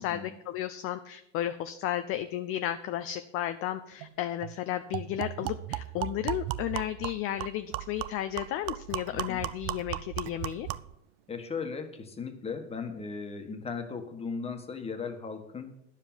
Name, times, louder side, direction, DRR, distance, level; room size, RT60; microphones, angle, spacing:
voice 1, 0.0-10.7, left 12 dB, 35° left, 10 dB, 0.6 m, -33 dB
sound 1, 4.0-4.1 4.4-4.5 4.9-11.0, right 15 dB, 50° right, 0.6 m, -36 dB
voice 2, 11.3-15.7, left 5 dB, 15° left, 6 dB, 1.5 m, -37 dB
9.8 x 7.4 x 7.5 m, 0.79 s
supercardioid pair, 125°, 36 cm